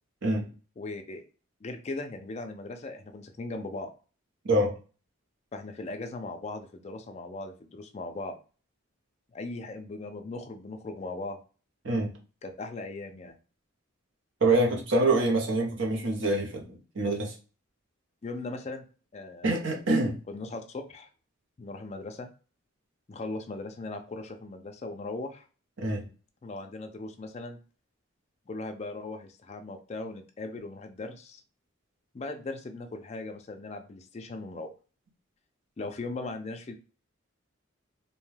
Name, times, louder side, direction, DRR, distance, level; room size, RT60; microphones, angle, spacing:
voice 1, 0.8-1.2 1.6-3.9 5.5-8.4 9.3-11.4 12.4-13.4 18.2-18.8 19.1-19.5 20.3-21.1 21.6-22.3 23.1-25.5 26.4-27.6 28.5-31.4 32.1-34.7 35.8-36.7, left 2 dB, 30° left, 0.3 m, -38 dB
voice 2, 14.4-17.3 19.4-20.2 25.8-26.1, right 2 dB, 60° right, 0.7 m, -25 dB
2.7 x 2.2 x 3.1 m
head